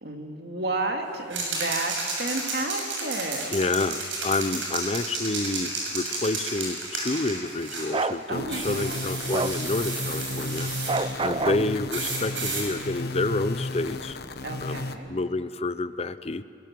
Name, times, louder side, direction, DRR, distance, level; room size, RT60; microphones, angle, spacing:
voice 1, 0.0-3.6 8.3-9.0 11.2-11.9 14.4-15.2, right 2 dB, 60° right, 3 dB, 2.4 m, -32 dB
sound 1, 1.3-7.9 8.5-11.0 11.9-12.7, right 3 dB, 80° right, 6.9 m, -32 dB
voice 2, 3.5-10.7 11.2-14.2 14.6-14.8 15.1-16.4, left 2 dB, 35° left, 13 dB, 0.6 m, -29 dB
Bark, 7.9-8.2 9.3-9.6 10.9-11.7, right 3 dB, 25° right, 0.5 m, -26 dB
sound 2, 8.3-15.0, left 2 dB, 55° left, 1.1 m, -34 dB
22.0 x 22.0 x 7.6 m, 2.6 s
head